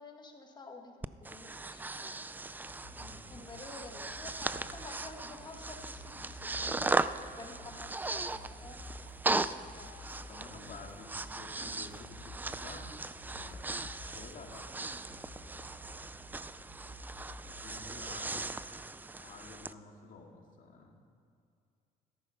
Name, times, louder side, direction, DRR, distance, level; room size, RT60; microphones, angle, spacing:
voice 1, 0.0-2.2 3.3-7.0 7.4-9.0 9.3-10.5, left 3 dB, 25° left, 3 dB, 1.6 m, -50 dB
Breathing, 1.0-19.7, right 3 dB, 10° right, 0.3 m, -38 dB
sound 1, 2.6-18.6, left 1 dB, 70° left, 2.9 m, -52 dB
voice 2, 2.9-3.5 10.3-12.9 13.2-13.6 14.0-15.0 15.3-15.8 17.6-18.5 18.8-18.9 19.2-20.9, left 4 dB, 50° left, 1 dB, 2.2 m, -51 dB
sound 2, 8.0-8.5 8.8-9.5 9.8-10.4 10.6-11.4 11.7-13.2 13.5-15.0, right 5 dB, 55° right, 1.2 m, -64 dB
13.5 x 10.5 x 5.7 m, 2.4 s
cardioid pair, 110°, 17 cm